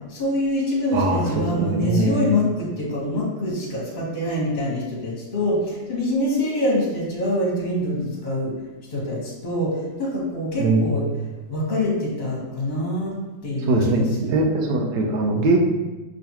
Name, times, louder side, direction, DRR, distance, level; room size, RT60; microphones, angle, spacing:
voice 1, 0.1-8.5 8.9-11.0 11.5-13.1 13.4-14.4, left 1 dB, 30° left, -4 dB, 1.1 m, -25 dB
voice 2, 0.9-2.3 10.6-10.9 13.6-15.6, right 2 dB, 85° right, 2 dB, 1.3 m, -21 dB
6.0 x 3.1 x 2.9 m, 1.1 s
omnidirectional pair, 1.8 m